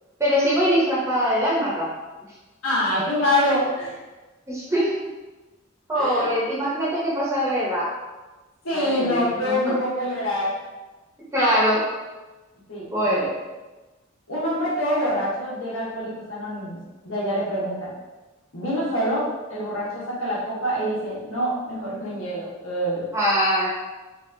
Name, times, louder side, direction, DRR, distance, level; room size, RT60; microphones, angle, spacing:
voice 1, 0.2-1.9 4.5-4.9 5.9-7.9 8.7-9.7 11.3-11.8 12.9-13.3 23.1-23.7, equal, 15° right, -6 dB, 0.8 m, -22 dB
voice 2, 2.6-4.0 5.9-6.3 8.6-10.5 12.7-13.2 14.3-16.8 17.0-17.9 18.5-23.0, equal, 90° left, -8 dB, 1.3 m, -25 dB
3.5 x 3.4 x 2.6 m, 1.2 s
head